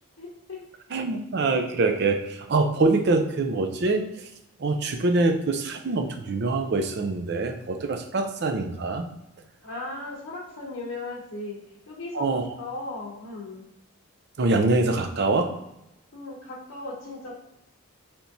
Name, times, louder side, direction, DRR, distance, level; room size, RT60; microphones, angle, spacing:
voice 1, 0.2-0.6 9.6-11.6 11.9-12.3 12.6-13.7 16.1-17.4, left 2 dB, 65° left, -5 dB, 0.7 m, -37 dB
voice 2, 0.9-4.3 4.6-9.1 12.1-12.5 14.4-15.5, right 3 dB, 50° right, 6 dB, 0.4 m, -24 dB
3.5 x 2.9 x 2.6 m, 0.87 s
head